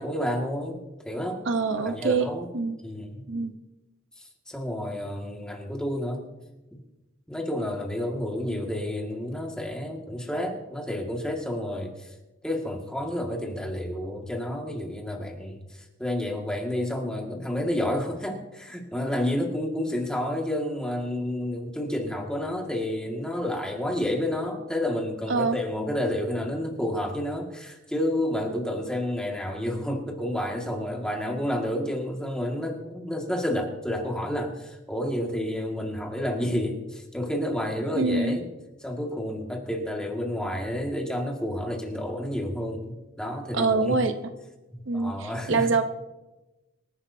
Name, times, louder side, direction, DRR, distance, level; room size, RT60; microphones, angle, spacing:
voice 1, 0.0-1.4 1.8-2.5 2.8-3.3 4.2-6.2 6.7-6.8 7.3-12.1 12.4-38.5 38.8-44.1 44.7-45.7, left 1 dB, 5° left, 0 dB, 1.8 m, -30 dB
voice 2, 1.5-2.3 2.5-2.8 3.3-3.5 25.3-25.6 37.9-38.4 43.5-44.1 44.9-45.8, right 4 dB, 60° right, 7 dB, 0.9 m, -24 dB
26.0 x 11.0 x 2.7 m, 1.0 s
head